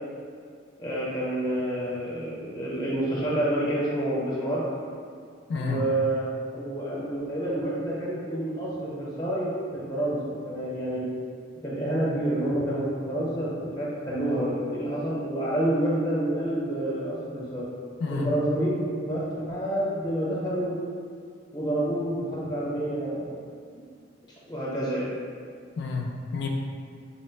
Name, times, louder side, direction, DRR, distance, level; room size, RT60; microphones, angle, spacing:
voice 1, 0.8-4.6 5.6-6.3 6.5-11.0 11.6-17.7 18.1-20.7 21.5-23.4 23.7-23.9 24.5-25.1, right 1 dB, 20° left, -6 dB, 0.7 m, -28 dB
voice 2, 5.5-5.9 18.0-18.3 25.8-26.5, left 4 dB, 60° left, 1 dB, 0.3 m, -30 dB
4.1 x 2.0 x 4.3 m, 2.2 s
head